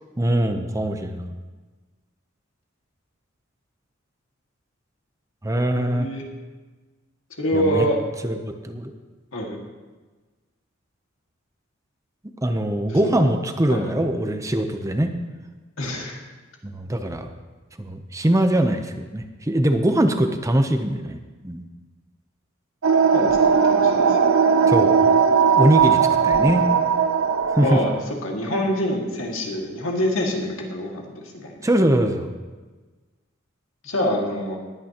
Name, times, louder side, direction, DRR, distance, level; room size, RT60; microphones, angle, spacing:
voice 1, 0.2-1.3 5.4-6.1 7.5-7.9 8.2-8.9 12.4-15.2 16.6-17.3 17.8-21.2 21.4-21.6 24.7-25.0 25.6-26.7 27.6-27.8 31.6-32.3, right 1 dB, 15° right, 6 dB, 0.7 m, -22 dB
voice 2, 5.7-6.3 7.4-8.0 9.3-9.6 12.9-13.3 13.7-13.9 15.8-16.2 23.1-24.2 26.3-26.5 27.6-31.6 33.8-34.6, equal, 75° left, 0 dB, 2.1 m, -26 dB
sound 1, 22.8-28.0, right 6 dB, 85° right, 0.6 m, -18 dB
20.0 x 9.0 x 3.0 m, 1.3 s
head